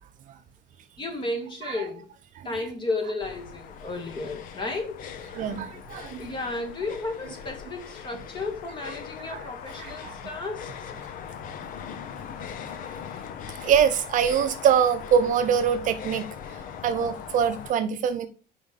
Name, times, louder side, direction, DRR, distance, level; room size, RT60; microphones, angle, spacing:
voice 1, 1.0-2.1 2.4-5.1 6.2-10.9, left 2 dB, 30° left, 2.0 m, -33 dB
sound 1, 3.2-17.7, left 8 dB, 60° left, 0.7 m, -40 dB
voice 2, 5.3-6.2 9.2-9.4 9.8-10.1 13.6-16.3 16.8-18.3, right 8 dB, 55° right, 0.7 m, -24 dB
5.1 x 5.0 x 5.7 m
cardioid pair, 140°, 16 cm